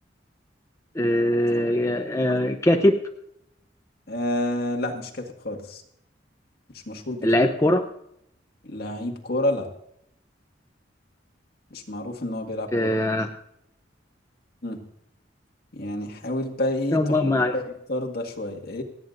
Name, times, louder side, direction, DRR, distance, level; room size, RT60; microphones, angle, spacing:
voice 1, 0.9-3.0 7.2-7.9 12.7-13.3 16.9-17.5, left 1 dB, 15° left, 4 dB, 0.7 m, -21 dB
voice 2, 4.1-5.8 6.9-7.3 8.6-9.7 11.7-13.0 14.6-14.8 15.7-17.0 17.5-17.6 17.9-18.8, left 1 dB, 55° left, 2 dB, 1.9 m, -29 dB
28.0 x 9.4 x 2.6 m, 0.75 s
head